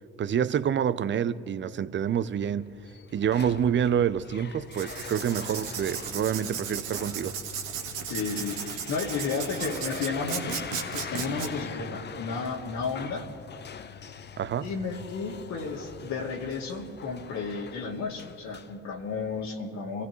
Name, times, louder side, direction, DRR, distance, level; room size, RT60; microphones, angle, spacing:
voice 1, 0.2-2.7 3.1-7.4 14.4-14.7, right 8 dB, 40° right, 0.7 m, -27 dB
sound 1, 2.0-19.5, left 7 dB, 35° left, 0.7 m, -43 dB
Writing, 4.7-11.5, right 8 dB, 75° right, 1.4 m, -36 dB
voice 2, 8.1-10.6 10.9-13.3 14.6-20.1, left 4 dB, 65° left, 2.1 m, -33 dB
26.5 x 15.0 x 3.1 m
hypercardioid pair, 50°, 30 cm